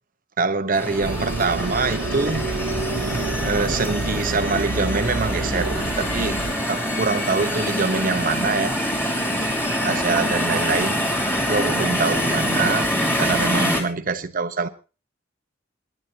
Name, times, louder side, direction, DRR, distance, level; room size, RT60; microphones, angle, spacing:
voice 1, 0.4-2.5 3.4-6.4 6.7-8.7 9.8-11.0 11.5-12.9 13.2-14.7, right 4 dB, 45° right, 10 dB, 0.9 m, -24 dB
sound 1, 0.7-13.8, equal, 10° left, 3.0 m, -25 dB
sound 2, 1.0-6.5, right 3 dB, 75° right, 0.8 m, -28 dB
26.5 x 11.0 x 2.8 m, 0.34 s
head